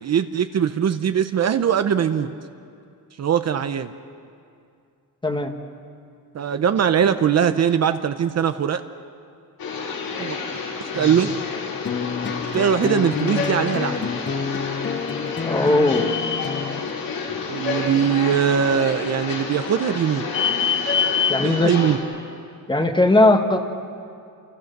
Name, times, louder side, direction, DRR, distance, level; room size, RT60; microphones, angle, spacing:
voice 1, 0.0-2.3 3.2-3.9 6.3-8.8 10.2-10.4 10.9-11.3 12.5-14.1 17.5-20.2 21.6-22.0, right 8 dB, 45° right, 9 dB, 0.8 m, -21 dB
sound 1, 9.6-22.0, left 5 dB, 70° left, 4.9 m, -28 dB
voice 2, 10.9-11.3 15.4-16.1 21.3-21.7 22.7-23.6, left 2 dB, 15° left, 5 dB, 1.5 m, -19 dB
sound 2, 11.8-16.9, left 6 dB, 30° left, 0.9 m, -29 dB
30.0 x 28.0 x 6.7 m, 2.4 s
cardioid pair, 160°, 36 cm